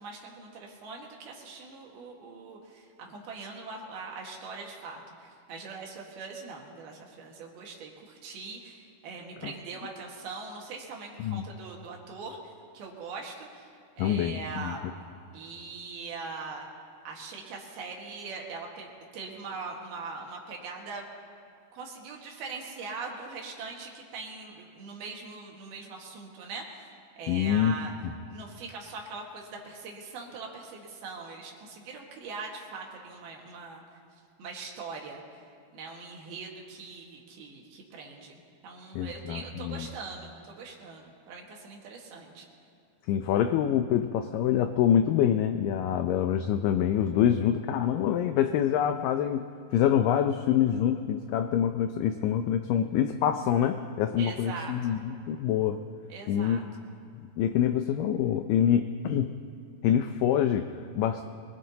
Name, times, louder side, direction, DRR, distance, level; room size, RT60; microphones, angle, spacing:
voice 1, 0.0-13.7 14.0-14.9 15.3-16.7 17.1-21.1 21.7-26.9 27.2-27.9 28.3-33.8 34.4-35.2 35.7-42.5 54.2-55.0 56.1-56.9, right 4 dB, 75° right, -1 dB, 3.5 m, -42 dB
voice 2, 14.0-14.8 27.3-27.8 28.0-28.1 39.0-39.9 43.1-55.8 56.3-56.6 57.4-59.3 59.8-61.3, left 9 dB, 80° left, 7 dB, 2.0 m, -26 dB
24.0 x 20.5 x 2.8 m, 2.4 s
omnidirectional pair, 4.5 m